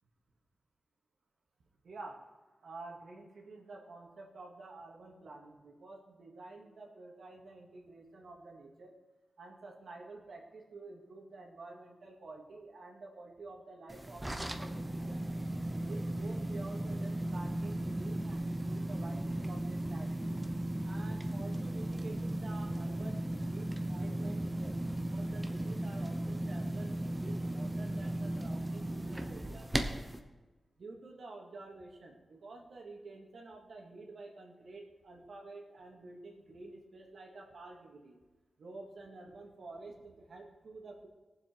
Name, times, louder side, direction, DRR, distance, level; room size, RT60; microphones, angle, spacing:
voice 1, 1.8-2.2 2.6-8.9 9.4-15.2 15.9-20.4 20.8-29.7 30.8-38.2 38.6-41.1, right 3 dB, 70° right, 0 dB, 2.1 m, -50 dB
sound 1, 13.9-30.2, right 1 dB, 10° right, 0.8 m, -36 dB
19.0 x 7.5 x 4.6 m, 1.2 s
wide cardioid pair, 150°, 0 cm